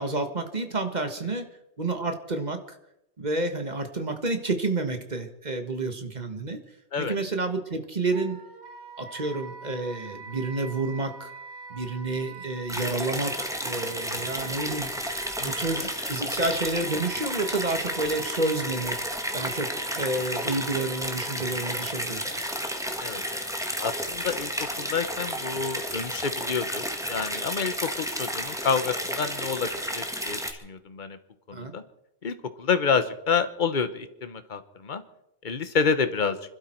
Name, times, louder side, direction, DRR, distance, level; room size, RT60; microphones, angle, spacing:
voice 1, 0.0-1.5 1.8-2.8 3.2-6.6 7.0-8.4 9.0-11.3 11.7-14.9 15.4-19.0 19.3-22.3 31.5-31.7, right 2 dB, 40° right, 7 dB, 1.6 m, -30 dB
Wind instrument woodwind instrument, 8.1-21.9, right 4 dB, 75° right, 1.7 m, -44 dB
sound 1, 12.7-30.5, equal, 5° right, 1.6 m, -32 dB
voice 2, 23.8-24.5 24.8-31.2 31.5-31.8 32.2-35.0 35.4-36.4, left 5 dB, 45° left, 10 dB, 1.2 m, -28 dB
26.0 x 12.5 x 4.5 m, 0.84 s
omnidirectional pair, 1.1 m